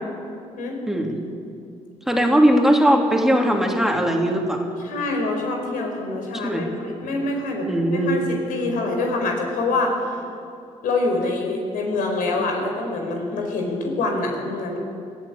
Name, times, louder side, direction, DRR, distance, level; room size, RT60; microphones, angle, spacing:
voice 1, 0.9-1.2 2.1-4.6 6.4-6.7 7.7-8.2, equal, 5° right, 1 dB, 3.2 m, -19 dB
voice 2, 4.8-10.2 10.8-14.8, left 2 dB, 80° left, 2 dB, 5.1 m, -25 dB
22.0 x 14.5 x 8.7 m, 2.4 s
cardioid pair, 75°, 14 cm